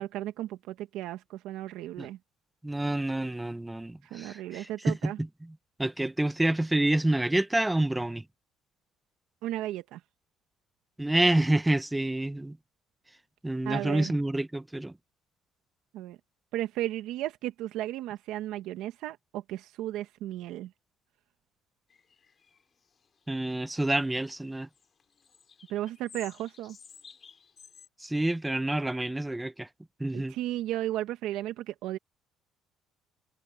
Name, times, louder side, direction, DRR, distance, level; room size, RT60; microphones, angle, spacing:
voice 1, 0.0-2.2 4.1-5.2 9.4-10.0 13.6-14.1 15.9-16.2 16.5-20.7 25.7-26.8 30.1-32.0, right 14 dB, 75° right, 1.6 m, -34 dB
voice 2, 2.6-5.3 5.8-8.2 11.0-12.6 13.4-14.9 23.3-24.7 28.0-29.7 30.0-30.4, right 1 dB, 10° right, 1.1 m, -28 dB
sound 1, 21.9-24.0 24.2-27.9, left 6 dB, 35° left, 3.3 m, -54 dB
cardioid pair, 115°, 0 cm